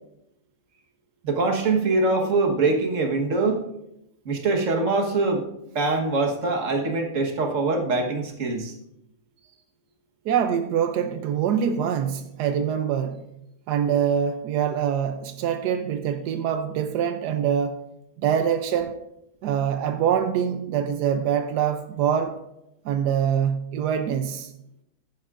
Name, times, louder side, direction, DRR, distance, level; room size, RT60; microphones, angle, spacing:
voice 1, 1.2-3.6 4.2-5.4 5.7-8.7, right 3 dB, 55° right, 1.7 m, -23 dB
voice 2, 10.3-13.2 13.7-17.8 18.2-19.0 19.4-22.4 22.8-24.5, right 8 dB, 85° right, 1.2 m, -24 dB
14.5 x 10.5 x 2.5 m
omnidirectional pair, 1.7 m